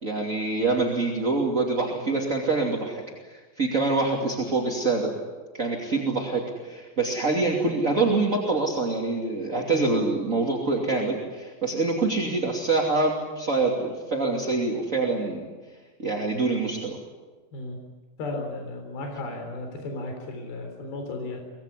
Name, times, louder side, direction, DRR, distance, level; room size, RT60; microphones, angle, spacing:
voice 1, 0.0-5.1 5.5-15.5 16.0-17.0, right 3 dB, 25° right, -1 dB, 2.0 m, -25 dB
voice 2, 18.2-21.4, left 2 dB, 55° left, 3 dB, 5.4 m, -34 dB
25.0 x 20.5 x 9.9 m, 1.3 s
omnidirectional pair, 5.4 m